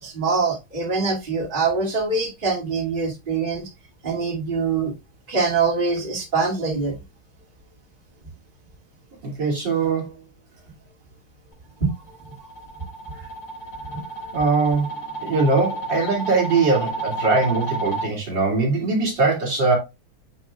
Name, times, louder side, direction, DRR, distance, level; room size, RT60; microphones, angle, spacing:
voice 1, 0.0-3.7 4.0-4.9 5.3-7.0 11.8-11.9 13.8-14.0, right 4 dB, 25° right, 2.6 m, -24 dB
voice 2, 9.2-10.2 14.3-19.8, right 3 dB, 60° right, 3.6 m, -21 dB
sound 1, 11.9-18.0, right 2 dB, 55° left, 4.9 m, -31 dB
9.2 x 5.9 x 2.4 m
omnidirectional pair, 2.2 m